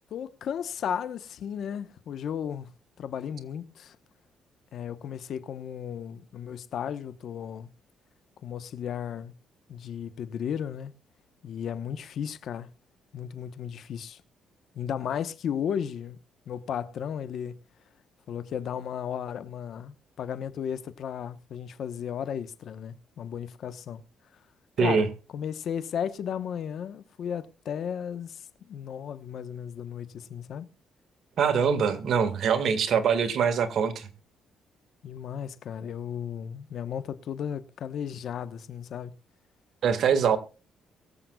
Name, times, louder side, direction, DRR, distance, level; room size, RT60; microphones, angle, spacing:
voice 1, 0.1-2.7 3.0-4.0 4.7-7.7 8.4-9.3 9.7-10.9 11.4-12.7 13.1-14.2 14.7-16.2 16.5-17.6 18.3-24.0 24.8-30.7 35.0-39.1, left 8 dB, 65° left, 1.1 m, -34 dB
voice 2, 31.4-34.1 39.8-40.4, right 6 dB, 65° right, 1.9 m, -23 dB
23.0 x 7.7 x 2.4 m
cardioid pair, 90°, 0 cm